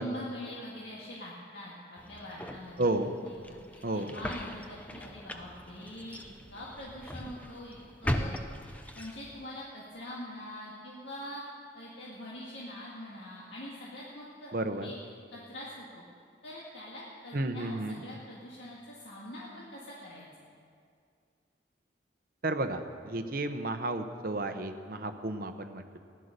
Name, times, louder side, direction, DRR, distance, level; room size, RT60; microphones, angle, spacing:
voice 1, 0.0-8.4 8.6-11.4 11.7-15.0 15.3-16.0 16.4-20.3, equal, 75° left, -5 dB, 2.0 m, -44 dB
sound 1, 2.0-9.5, left 1 dB, 10° left, 0.6 m, -39 dB
voice 2, 2.8-3.1 3.8-4.1 14.5-14.9 17.3-18.0 22.4-26.0, right 2 dB, 50° right, 7 dB, 0.9 m, -32 dB
15.5 x 11.0 x 6.7 m, 2.2 s
head